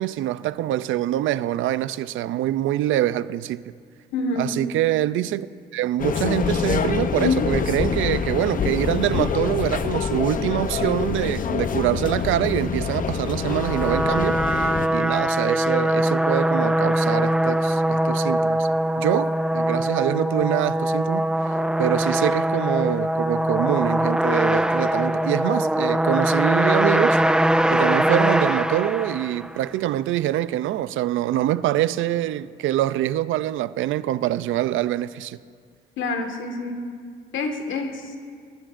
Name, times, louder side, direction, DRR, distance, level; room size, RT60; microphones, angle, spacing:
voice 1, 0.0-3.6 4.4-5.5 5.7-18.7 19.0-21.3 21.8-27.2 27.7-35.4, right 13 dB, 85° right, 0.5 m, -25 dB
voice 2, 4.1-4.5 36.0-36.9 37.3-38.1, left 2 dB, 75° left, 1.9 m, -28 dB
sound 1, 6.0-14.9, left 6 dB, 45° left, 0.7 m, -25 dB
sound 2, 13.4-29.7, right 1 dB, 5° right, 0.4 m, -22 dB
23.5 x 21.5 x 2.6 m
cardioid pair, 90°, 20 cm